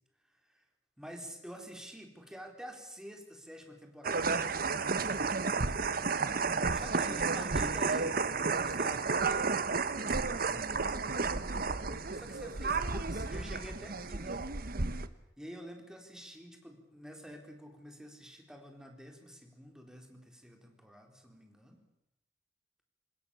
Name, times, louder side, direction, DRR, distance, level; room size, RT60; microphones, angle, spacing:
voice 1, 1.0-4.7 5.1-5.9 6.7-9.6 10.2-14.4 15.4-21.8, equal, 5° right, 3 dB, 4.2 m, -48 dB
sound 1, 4.0-15.1, right 4 dB, 55° right, 1.2 m, -32 dB
27.0 x 21.0 x 7.1 m, 0.80 s
head